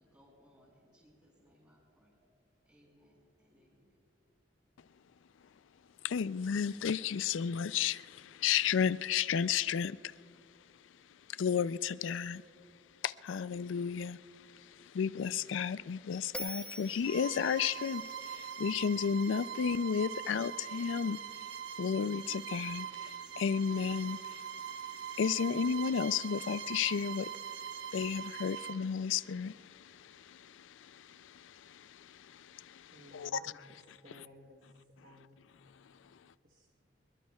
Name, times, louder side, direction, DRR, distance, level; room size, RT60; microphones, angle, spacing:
voice 1, 0.0-2.2 2.6-4.0, equal, 15° right, 4.5 m, -65 dB
voice 2, 6.0-10.5 10.8-12.4 13.0-34.3 35.7-36.3, left 7 dB, 85° left, 0.4 m, -34 dB
Bell, 16.3-19.6, equal, 5° left, 0.7 m, -46 dB
Bowed string instrument, 17.0-28.8, right 8 dB, 70° right, 0.6 m, -42 dB
voice 3, 32.9-33.6 34.0-34.7 35.0-35.5 36.4-36.7, equal, 50° right, 1.2 m, -56 dB
25.0 x 22.0 x 2.3 m
head